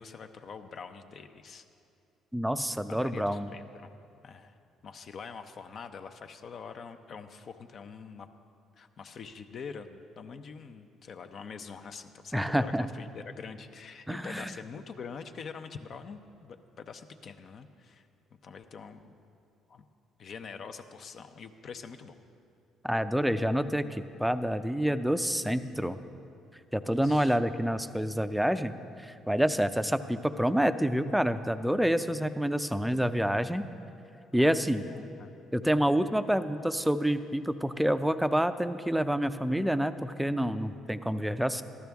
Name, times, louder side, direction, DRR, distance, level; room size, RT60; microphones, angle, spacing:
voice 1, 0.0-1.7 2.9-3.9 4.2-4.6 4.8-8.3 8.8-19.1 19.7-19.8 20.2-22.2 26.9-27.4 34.7-35.3, left 5 dB, 55° left, 8 dB, 0.6 m, -45 dB
voice 2, 2.3-3.5 12.3-12.9 14.1-14.5 22.8-26.0 26.7-28.8 29.0-33.7 34.3-34.8 35.5-41.6, equal, 5° right, 11 dB, 0.5 m, -28 dB
14.0 x 12.5 x 3.5 m, 2.6 s
supercardioid pair, 85°, 0 cm